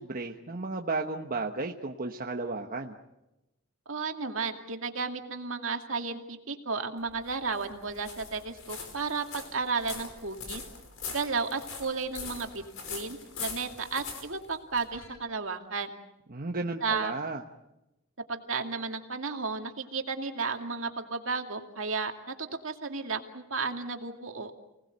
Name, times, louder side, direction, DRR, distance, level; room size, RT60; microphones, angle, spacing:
voice 1, 0.0-3.0 16.3-17.4, right 3 dB, 45° right, 3 dB, 1.2 m, -33 dB
voice 2, 3.9-10.6 11.1-12.6 12.9-15.9 16.8-17.1 18.3-24.6, right 4 dB, 70° right, 4 dB, 2.4 m, -33 dB
sound 1, 7.0-15.2, left 5 dB, 75° left, 5.2 m, -42 dB
29.5 x 19.0 x 8.0 m, 0.95 s
head